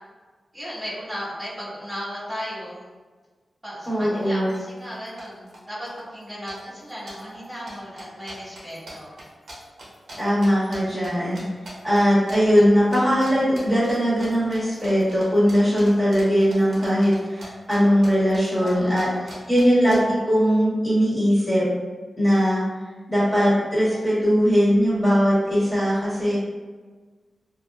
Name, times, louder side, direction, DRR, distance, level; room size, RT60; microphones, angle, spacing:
voice 1, 0.5-2.8 3.6-9.1 18.5-19.4, equal, 15° right, -11 dB, 1.4 m, -35 dB
voice 2, 3.9-4.5 10.2-11.4 11.8-19.1 19.5-21.6 22.2-22.6 23.1-26.4, equal, 15° left, -10 dB, 1.4 m, -20 dB
sound 1, 3.9-4.0 4.2-4.6 4.8-5.6 5.9-6.2 6.5-11.1 11.3-12.0 12.3-12.7 12.9-13.3 13.6-17.8 18.0-20.0, right 1 dB, 75° right, 0.8 m, -41 dB
2.5 x 2.4 x 2.3 m, 1.4 s
cardioid pair, 55°, 0 cm